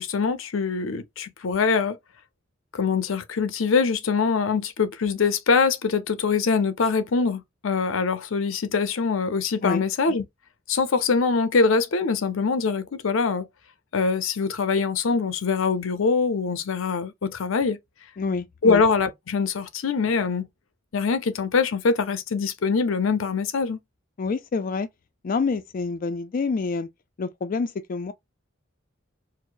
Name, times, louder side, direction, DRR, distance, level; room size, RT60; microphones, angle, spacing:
voice 1, 0.0-2.0 2.7-10.2 10.7-13.5 13.9-17.8 18.6-20.5 20.9-23.8, left 5 dB, 85° left, 0.6 m, -23 dB
voice 2, 18.2-18.8 24.2-24.9 25.2-26.9 27.2-28.1, left 4 dB, 45° left, 0.3 m, -27 dB
4.6 x 2.0 x 2.5 m
head